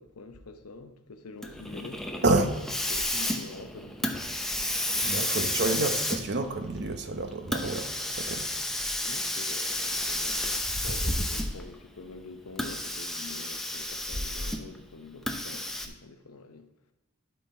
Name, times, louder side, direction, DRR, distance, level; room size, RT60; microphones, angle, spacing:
voice 1, 0.0-4.2 4.9-5.5 9.0-16.7, left 3 dB, 80° left, 0.8 m, -46 dB
Hiss, 1.4-11.7 12.5-14.8 15.3-15.9, left 1 dB, ahead, 0.6 m, -31 dB
voice 2, 5.0-8.5, right 2 dB, 50° right, 0.8 m, -28 dB
12.0 x 4.4 x 4.3 m
head